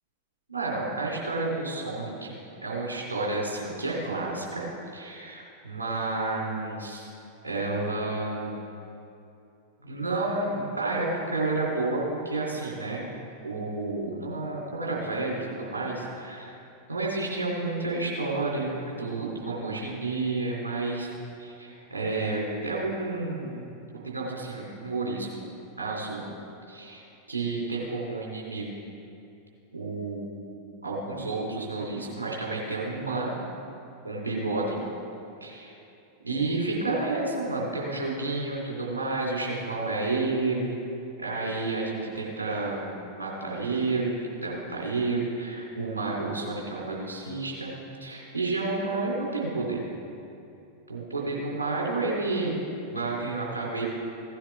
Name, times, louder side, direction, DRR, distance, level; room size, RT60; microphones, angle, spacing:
voice 1, 0.5-4.6 4.9-7.1 7.4-8.6 9.8-13.0 13.4-16.6 16.9-21.1 21.4-23.7 24.0-25.5 25.8-26.3 26.7-28.7 29.7-30.3 30.8-33.3 34.0-34.8 35.4-35.7 36.2-40.8 41.2-47.7 48.0-49.8 50.9-52.5 52.8-53.9, right 3 dB, 75° right, -3 dB, 3.0 m, -30 dB
16.0 x 10.0 x 3.5 m, 2.7 s
figure-of-eight pair, 90°, 0 cm